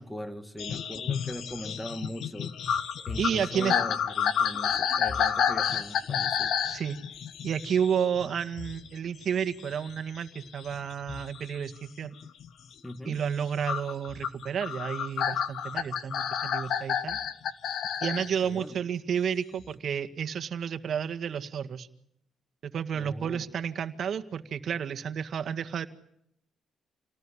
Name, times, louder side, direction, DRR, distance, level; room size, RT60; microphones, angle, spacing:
voice 1, 0.0-2.5 3.1-6.5 12.8-13.2 18.0-18.8 22.9-23.5, equal, 5° left, 10 dB, 2.2 m, -40 dB
sound 1, 0.6-8.9 9.2-11.6 12.0-12.5 13.7-18.3 19.6-19.7, left 8 dB, 70° left, 1.4 m, -30 dB
voice 2, 3.2-3.8 6.7-7.0 7.4-12.1 13.1-17.2 18.0-21.9 22.6-25.9, right 8 dB, 60° right, 9 dB, 1.9 m, -31 dB
28.0 x 19.0 x 10.0 m, 0.75 s
cardioid pair, 90°, 0 cm